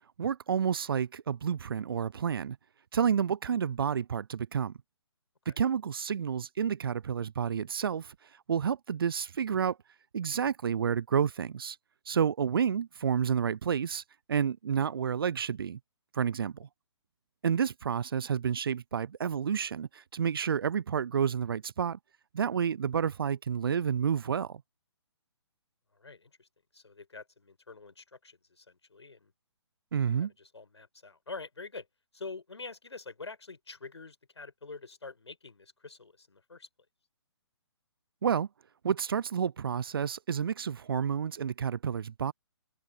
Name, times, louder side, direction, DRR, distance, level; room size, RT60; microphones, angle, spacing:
voice 1, 0.2-2.6 2.9-4.7 5.5-8.1 8.5-9.8 10.1-11.8 12.1-14.0 14.3-15.8 16.1-16.7 17.4-22.0 22.3-24.5 29.9-30.3 38.2-38.5 38.8-42.3, right 7 dB, 55° right, 0.7 m, -30 dB
voice 2, 25.9-26.5 26.7-29.3 30.2-31.9 32.1-36.7, left 4 dB, 75° left, 5.3 m, -46 dB
open air
figure-of-eight pair, 130°, 15 cm